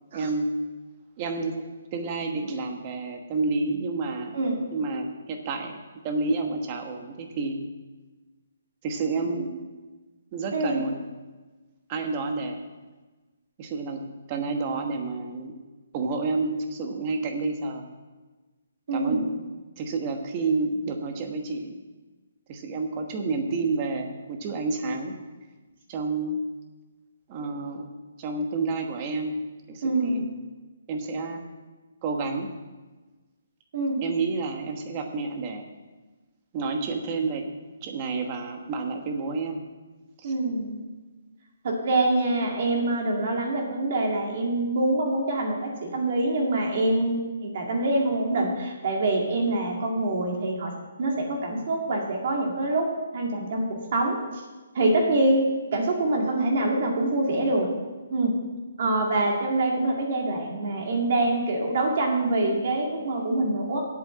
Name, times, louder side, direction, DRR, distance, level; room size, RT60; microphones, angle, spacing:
voice 1, 0.1-0.5 1.2-1.6 1.9-4.4 4.7-5.8 6.0-7.6 8.8-9.5 10.3-11.0 11.9-12.6 13.6-15.5 15.9-17.8 18.9-19.4 19.8-21.7 22.5-25.1 25.9-26.4 27.3-27.9 28.2-29.4 29.7-30.2 30.9-31.4 32.0-32.5 34.0-35.6 36.5-37.5 37.8-39.6 40.2-40.3, right 3 dB, 25° right, 5 dB, 1.2 m, -29 dB
voice 2, 4.3-4.6 9.4-9.5 10.5-10.8 18.9-19.2 29.8-30.2 33.7-34.0 40.2-40.8 41.6-50.7 51.0-52.9 53.1-54.2 54.7-57.7 58.1-58.4 58.8-63.8, right 2 dB, 45° right, 0 dB, 2.1 m, -25 dB
8.2 x 7.4 x 8.6 m, 1.3 s
hypercardioid pair, 170°, 0 cm